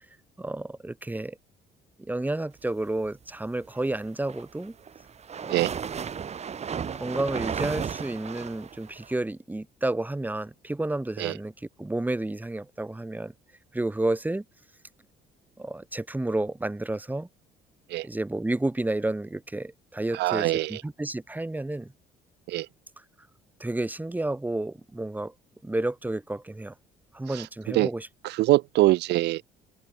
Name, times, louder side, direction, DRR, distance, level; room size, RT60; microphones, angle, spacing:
voice 1, 0.4-1.4 2.0-4.8 5.4-5.6 6.9-11.5 11.8-13.3 13.7-14.4 15.6-17.3 18.0-21.9 23.6-25.3 25.6-26.7 27.1-28.1, right 2 dB, 10° right, 5.2 m, -31 dB
sound 1, 4.0-9.1, right 7 dB, 40° right, 6.8 m, -34 dB
voice 2, 20.1-20.8 22.5-22.7 27.3-27.9 28.2-29.4, right 18 dB, 85° right, 4.2 m, -24 dB
cardioid pair, 110°, 17 cm